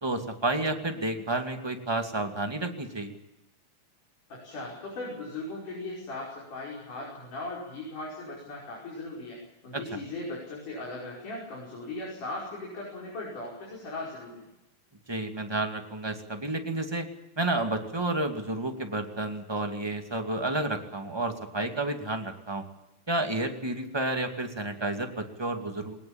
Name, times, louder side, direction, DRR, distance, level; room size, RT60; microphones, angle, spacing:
voice 1, 0.0-3.2 9.7-10.0 15.1-17.1 17.4-22.6 23.1-26.0, right 2 dB, 10° right, 4 dB, 1.8 m, -31 dB
voice 2, 4.3-14.5, left 2 dB, 85° left, -3 dB, 6.9 m, -38 dB
20.5 x 19.5 x 8.8 m, 0.95 s
omnidirectional pair, 3.5 m